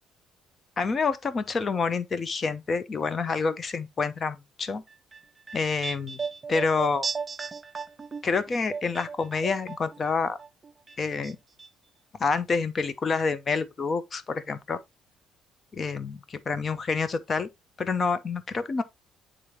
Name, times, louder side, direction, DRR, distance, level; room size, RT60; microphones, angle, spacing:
voice 1, 0.8-4.8 5.5-6.2 6.5-7.1 8.2-10.4 11.0-11.4 12.2-14.8 15.7-17.5 17.8-18.8, left 4 dB, 30° left, 0.7 m, -28 dB
sound 1, 4.9-10.1 10.4-11.3 11.6-11.7, right 5 dB, 20° right, 0.5 m, -36 dB
8.7 x 3.8 x 2.9 m
cardioid pair, 130°, 0 cm